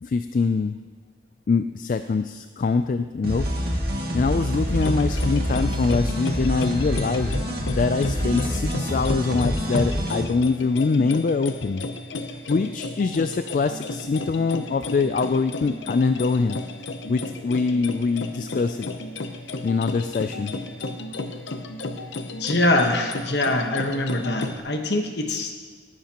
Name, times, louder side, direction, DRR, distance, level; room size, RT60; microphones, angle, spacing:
voice 1, 0.0-0.8 1.5-3.5 4.1-7.4 7.7-11.8 12.5-16.6 17.1-18.9 19.6-20.5, left 4 dB, 45° left, 9 dB, 0.3 m, -24 dB
sound 1, 3.2-10.2, equal, 55° right, 2.1 m, -26 dB
sound 2, 4.7-24.6, left 2 dB, 80° left, 0.7 m, -33 dB
voice 2, 22.4-25.6, left 2 dB, 65° left, 4 dB, 1.2 m, -23 dB
17.5 x 11.0 x 3.0 m, 1.5 s
head